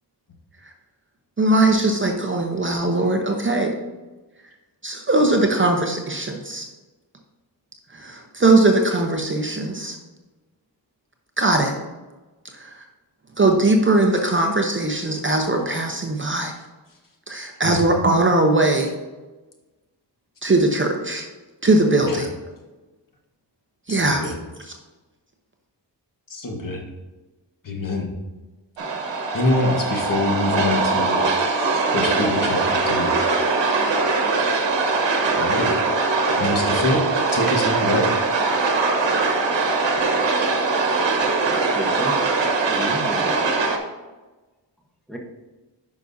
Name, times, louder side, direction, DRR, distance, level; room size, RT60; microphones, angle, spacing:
voice 1, 1.4-3.7 4.8-6.7 7.9-10.0 11.4-11.7 12.6-12.7 13.4-16.5 17.3-18.9 20.4-21.3 21.6-22.3 23.9-24.2, right 2 dB, 30° right, 2 dB, 0.8 m, -20 dB
voice 2, 23.9-24.3 26.3-26.8 27.6-28.1 29.3-31.2 31.9-33.1 35.4-35.7 36.4-37.0 37.3-38.1, left 2 dB, 45° left, 1 dB, 1.4 m, -24 dB
sound 1, 28.8-43.8, right 3 dB, 80° right, 1.2 m, -21 dB
voice 3, 41.7-42.2 42.7-43.6 45.1-45.2, right 1 dB, ahead, 0 dB, 1.1 m, -32 dB
9.7 x 5.8 x 2.7 m, 1.2 s
wide cardioid pair, 130°, 43 cm